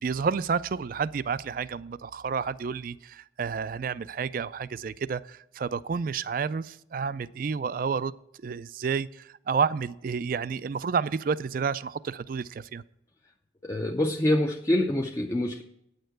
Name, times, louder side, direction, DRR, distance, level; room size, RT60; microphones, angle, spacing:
voice 1, 0.0-8.1 8.4-12.8, right 5 dB, 45° right, 18 dB, 0.3 m, -30 dB
voice 2, 13.6-15.6, left 1 dB, 15° left, 3 dB, 0.4 m, -26 dB
9.3 x 6.6 x 7.8 m, 0.80 s
head